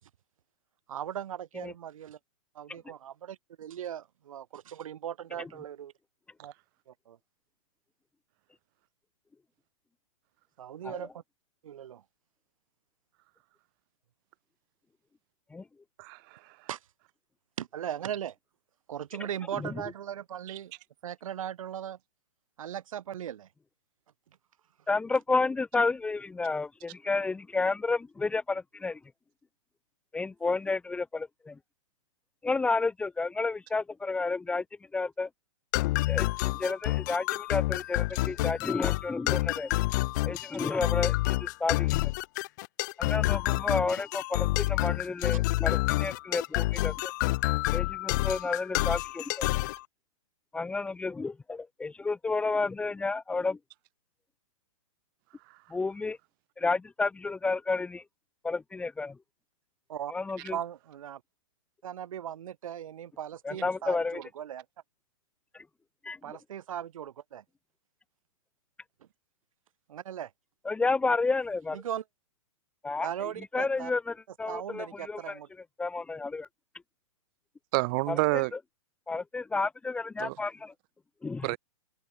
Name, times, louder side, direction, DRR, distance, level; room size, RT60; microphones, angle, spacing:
voice 1, 0.9-2.2 2.5-5.9 6.4-6.5 6.9-7.2 10.6-11.2 11.6-12.0 16.7-16.8 17.6-18.4 18.9-20.7 21.0-22.0 22.6-23.5 59.9-60.1 60.5-61.2 61.8-64.6 66.2-67.4 69.9-70.3 71.7-72.0 73.0-73.9 74.5-75.5, right 10 dB, 65° right, 4.6 m, -38 dB
voice 2, 16.0-16.7 20.5-20.6 55.5-55.6 77.7-78.5 80.2-80.4 81.4-81.6, right 27 dB, 35° right, 3.2 m, -29 dB
voice 3, 24.9-29.0 30.1-31.6 32.4-34.6 34.9-35.3 36.1-39.7 40.2-42.1 43.0-47.1 47.7-49.5 50.5-53.6 55.7-56.2 56.6-58.0 58.4-59.2 60.1-60.6 63.4-64.2 65.5-65.6 66.0-66.4 70.6-71.8 72.8-73.1 73.5-75.4 75.8-76.5 78.1-78.4 79.1-80.7 81.2-81.6, left 3 dB, 5° left, 1.7 m, -31 dB
sound 1, 35.7-49.8, left 20 dB, 30° left, 0.5 m, -28 dB
open air
hypercardioid pair, 155°, 18 cm